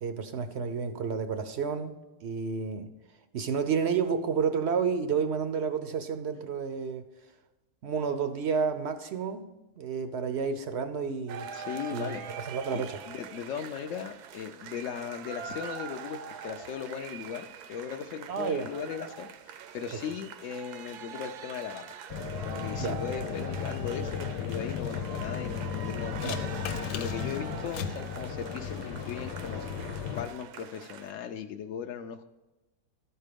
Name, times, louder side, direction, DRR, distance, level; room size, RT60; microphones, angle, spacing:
voice 1, 0.0-2.9 3.3-7.0 7.8-9.5 9.8-11.5 11.9-13.0 18.3-18.7 22.8-23.0 26.2-26.4, right 6 dB, 65° right, 0.7 m, -30 dB
sound 1, 11.3-31.1, right 8 dB, 80° right, 1.2 m, -43 dB
voice 2, 11.5-12.2 12.7-22.0 22.4-26.3 26.9-29.6 30.1-32.2, left 8 dB, 70° left, 0.7 m, -38 dB
sound 2, 22.1-30.3, left 7 dB, 90° left, 1.2 m, -35 dB
12.5 x 4.5 x 5.0 m
omnidirectional pair, 1.7 m